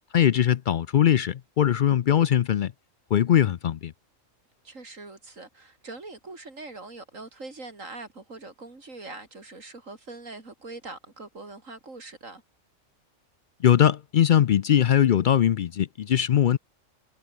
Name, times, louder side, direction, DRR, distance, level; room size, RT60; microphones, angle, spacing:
voice 1, 0.1-2.7 3.1-3.9 13.6-16.6, left 10 dB, 65° left, 0.5 m, -21 dB
voice 2, 4.6-12.4, right 3 dB, 75° right, 4.2 m, -42 dB
omnidirectional pair, 1.4 m